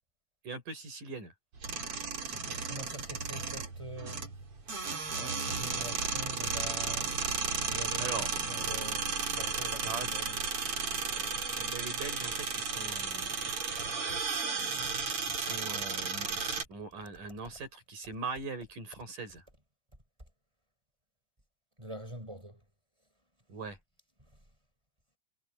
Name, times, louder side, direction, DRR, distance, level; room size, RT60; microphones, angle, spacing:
voice 1, 0.4-1.3 8.0-8.3 9.8-10.1 11.6-13.5 15.2-19.4 23.5-23.8, right 4 dB, 60° right, 7.7 m, -41 dB
sound 1, 1.6-16.6, right 5 dB, 40° right, 3.9 m, -34 dB
voice 2, 2.3-4.3 5.1-10.4 21.8-22.6 24.2-24.3, right 1 dB, 5° right, 7.8 m, -45 dB
omnidirectional pair, 4.1 m